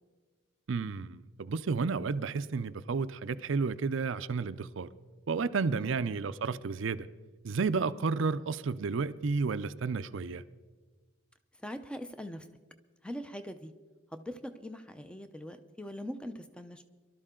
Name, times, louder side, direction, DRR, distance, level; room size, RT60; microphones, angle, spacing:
voice 1, 0.7-4.9 5.3-7.1 7.4-10.4, right 4 dB, 65° right, 14 dB, 0.5 m, -31 dB
voice 2, 11.5-12.5 13.0-13.7 14.1-16.8, equal, 5° left, 9 dB, 0.6 m, -42 dB
23.0 x 12.5 x 3.8 m, 1.4 s
head